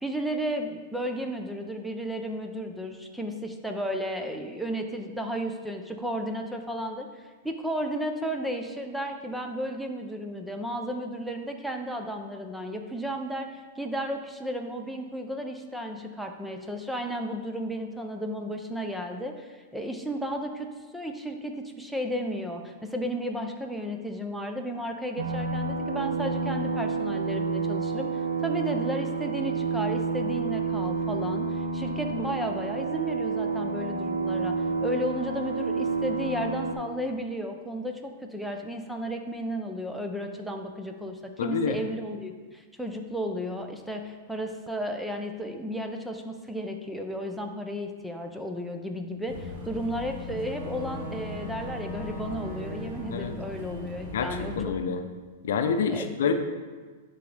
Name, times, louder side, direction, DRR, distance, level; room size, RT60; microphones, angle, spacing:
voice 1, 0.0-54.8 55.9-56.1, equal, ahead, 4 dB, 0.7 m, -33 dB
sound 1, 25.2-36.7, right 4 dB, 80° right, 0.8 m, -29 dB
voice 2, 41.4-41.8 53.1-53.3 54.1-54.3 54.5-55.0 55.4-56.3, left 6 dB, 75° left, 7 dB, 0.6 m, -27 dB
Boat Water vehicle / Engine, 49.3-54.6, left 2 dB, 60° right, 1.6 m, -38 dB
11.5 x 3.8 x 3.4 m, 1.4 s
hypercardioid pair, 115°, 0 cm